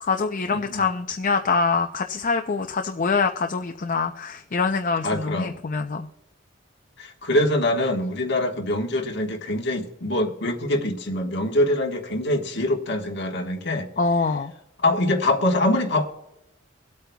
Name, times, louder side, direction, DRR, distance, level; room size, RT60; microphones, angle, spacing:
voice 1, 0.0-6.1 14.0-14.5, left 4 dB, 40° left, 5 dB, 0.5 m, -24 dB
voice 2, 0.5-0.8 5.0-5.5 7.0-13.9 14.8-16.2, left 1 dB, 55° left, 2 dB, 1.4 m, -24 dB
23.5 x 8.5 x 2.3 m, 0.88 s
head